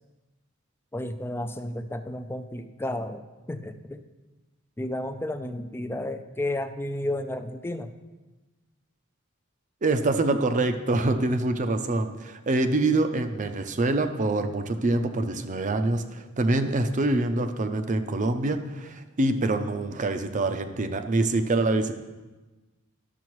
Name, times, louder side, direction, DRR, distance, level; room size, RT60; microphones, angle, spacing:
voice 1, 0.9-3.2 3.5-4.0 4.8-7.9, left 1 dB, 10° left, 8 dB, 0.4 m, -32 dB
voice 2, 9.8-21.9, right 2 dB, 40° right, 7 dB, 0.5 m, -25 dB
12.0 x 6.8 x 3.1 m, 1.2 s
head